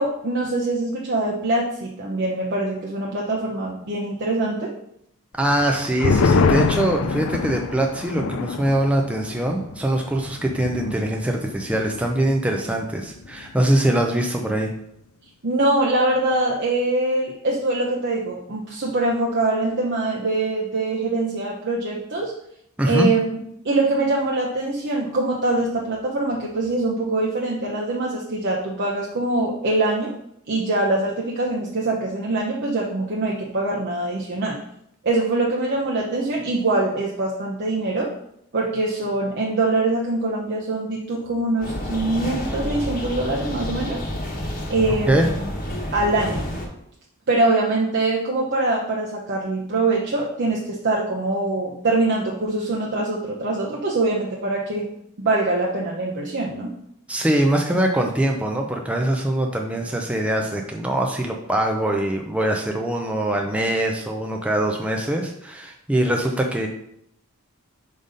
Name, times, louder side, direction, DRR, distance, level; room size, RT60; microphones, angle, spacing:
voice 1, 0.0-4.7 15.4-22.3 22.9-23.2 23.6-30.1 30.5-34.6 35.0-38.1 38.5-44.0 44.7-45.3 45.9-46.5 47.3-54.9 55.2-56.7, right 2 dB, 50° right, -3 dB, 0.7 m, -23 dB
sound 1, 5.4-12.4 12.7-12.8 13.1-13.6, left 4 dB, 65° left, 0.4 m, -25 dB
voice 2, 5.4-14.7 22.8-23.1 45.1-45.3 57.1-66.7, right 1 dB, 5° right, 1 dB, 0.5 m, -23 dB
sound 2, 41.6-46.7, left 1 dB, 40° left, 1.1 m, -29 dB
5.2 x 4.0 x 5.1 m, 0.76 s
head